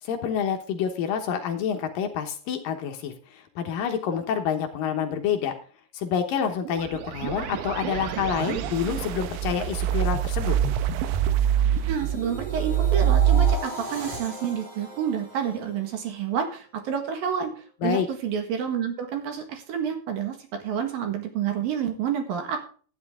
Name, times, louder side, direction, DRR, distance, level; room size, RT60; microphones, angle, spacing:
voice 1, 0.0-5.5 5.9-10.6 17.8-18.1, left 8 dB, 70° left, 4 dB, 2.2 m, -28 dB
sound 1, 6.7-13.5, right 10 dB, 90° right, 2.0 m, -25 dB
sound 2, 10.3-16.4 16.8-17.1, right 2 dB, 45° right, 4.8 m, -39 dB
voice 2, 11.9-17.5 17.8-22.6, right 8 dB, 60° right, 5 dB, 3.0 m, -29 dB
12.5 x 10.5 x 3.6 m, 0.41 s
omnidirectional pair, 5.2 m